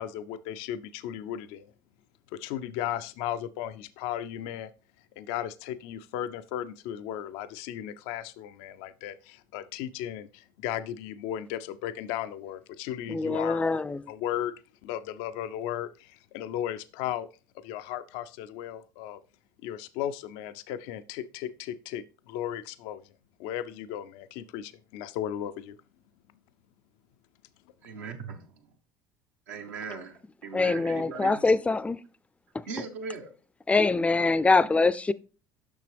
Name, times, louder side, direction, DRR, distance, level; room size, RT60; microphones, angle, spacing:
voice 1, 0.0-1.7 2.3-4.7 5.2-13.7 14.1-14.5 14.8-17.3 17.5-19.2 19.6-23.0 23.4-25.8, left 11 dB, 75° left, 0.4 m, -35 dB
voice 2, 13.1-14.1 30.5-32.0 32.5-32.6 33.7-35.1, left 3 dB, 15° left, 0.4 m, -24 dB
voice 3, 27.8-28.7 29.5-31.4 32.7-33.3, right 5 dB, 85° right, 1.2 m, -39 dB
6.9 x 5.9 x 3.4 m
hypercardioid pair, 75°, 9 cm